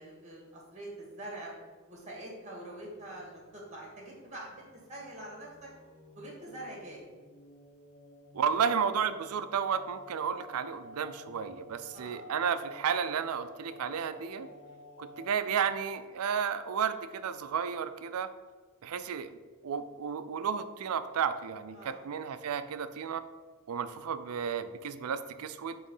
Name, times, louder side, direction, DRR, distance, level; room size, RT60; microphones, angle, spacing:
voice 1, 0.0-1.5 1.9-4.6 4.9-5.7 6.2-7.0 11.9-12.2 21.7-22.0, right 1 dB, 30° right, -2 dB, 1.8 m, -44 dB
sound 1, 2.7-15.5, left 1 dB, 55° left, 1.0 m, -53 dB
voice 2, 8.3-14.5 15.0-18.3 18.8-19.4 19.6-23.2 23.7-25.8, right 7 dB, 90° right, 11 dB, 0.4 m, -32 dB
6.4 x 3.2 x 5.4 m, 1.4 s
head